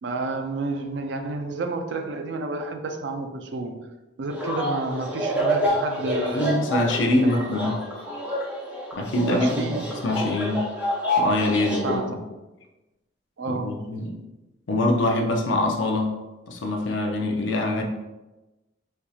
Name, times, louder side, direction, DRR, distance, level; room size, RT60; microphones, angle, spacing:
voice 1, 0.0-3.9 4.2-6.5 7.2-7.4 9.3-9.9 11.8-12.1 13.4-13.9, right 3 dB, 65° right, 6 dB, 0.4 m, -30 dB
sound 1, 4.3-12.0, equal, 10° right, 0.7 m, -28 dB
voice 2, 6.3-7.8 8.9-9.5 10.0-10.6 11.2-12.2 13.5-14.2 14.7-16.1 16.5-17.8, left 1 dB, 75° left, 2 dB, 0.5 m, -24 dB
4.4 x 2.7 x 2.3 m, 1.1 s
head